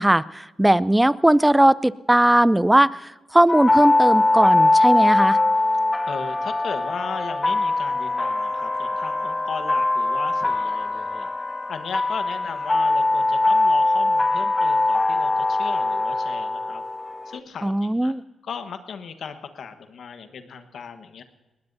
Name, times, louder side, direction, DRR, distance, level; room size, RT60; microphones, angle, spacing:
voice 1, 0.0-2.9 3.3-5.4 17.6-18.2, right 1 dB, 10° right, 19 dB, 0.5 m, -18 dB
sound 1, 3.5-17.4, left 2 dB, 25° left, 0.8 m, -21 dB
voice 2, 5.7-11.3 11.7-16.8 17.3-18.1 18.4-21.2, left 6 dB, 70° left, 9 dB, 1.3 m, -36 dB
20.5 x 18.0 x 2.7 m, 1.2 s
supercardioid pair, 50°, 0 cm